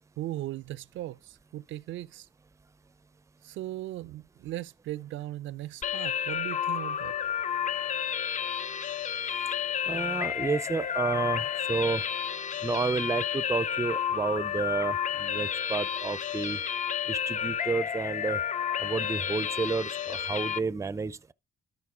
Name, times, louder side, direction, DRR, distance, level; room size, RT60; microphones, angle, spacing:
voice 1, 0.2-2.3 3.4-7.1, right 14 dB, 75° right, 0.4 m, -38 dB
sound 1, 5.8-20.6, left 8 dB, 40° left, 0.5 m, -31 dB
voice 2, 9.9-12.0 12.6-16.6 17.1-18.4 18.8-21.3, right 4 dB, 15° right, 0.5 m, -31 dB
12.5 x 4.3 x 4.8 m
cardioid pair, 90°, 20 cm